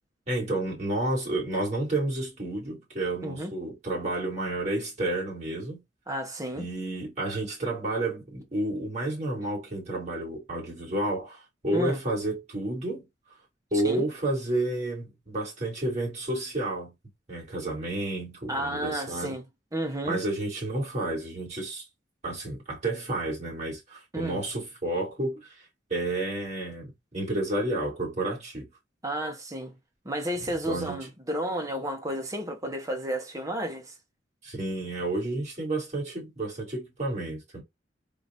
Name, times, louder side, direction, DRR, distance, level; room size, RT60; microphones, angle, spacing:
voice 1, 0.3-5.8 6.6-13.0 13.7-16.9 17.3-19.4 20.0-21.8 22.2-25.5 25.9-28.7 30.7-31.1 34.4-37.6, right 2 dB, 40° right, 2.5 m, -30 dB
voice 2, 3.2-3.5 6.1-6.7 11.7-12.0 13.8-14.0 18.5-19.4 19.7-20.2 24.1-24.4 29.0-29.7 30.0-33.9, right 1 dB, 20° right, 0.9 m, -32 dB
3.8 x 2.4 x 3.8 m
head